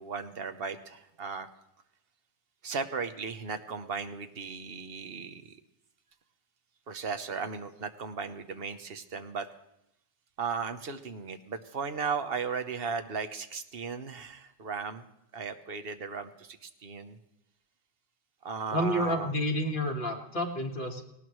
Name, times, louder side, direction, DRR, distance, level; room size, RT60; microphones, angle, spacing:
voice 1, 0.0-1.5 2.6-5.6 6.9-9.5 10.4-15.0 15.3-17.2 18.4-19.3, right 5 dB, 70° right, 9 dB, 1.1 m, -36 dB
voice 2, 18.7-21.0, equal, 55° left, 1 dB, 1.9 m, -30 dB
18.5 x 18.5 x 3.1 m, 0.82 s
omnidirectional pair, 1.0 m